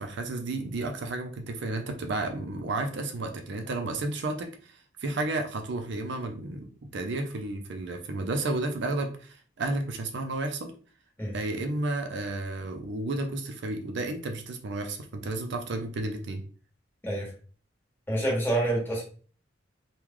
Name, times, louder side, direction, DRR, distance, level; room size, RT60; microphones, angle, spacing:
voice 1, 0.0-10.7 11.3-16.4, right 2 dB, 65° right, 5 dB, 0.5 m, -32 dB
voice 2, 18.1-19.0, right 1 dB, 10° left, -4 dB, 1.3 m, -27 dB
3.0 x 2.3 x 3.7 m, 0.41 s
head